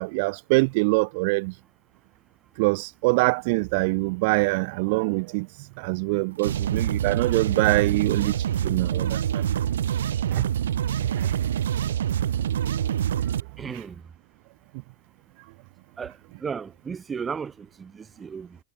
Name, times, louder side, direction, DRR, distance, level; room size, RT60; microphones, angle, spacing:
voice 1, 0.0-1.5 2.6-5.5 5.8-9.5 10.3-10.4 11.0-11.3, right 29 dB, 60° right, 0.5 m, -24 dB
sound 1, 6.4-13.4, right 10 dB, 75° right, 1.2 m, -26 dB
voice 2, 13.6-14.0 16.0-18.6, right 6 dB, 25° right, 1.9 m, -35 dB
figure-of-eight pair, 80°, 0 cm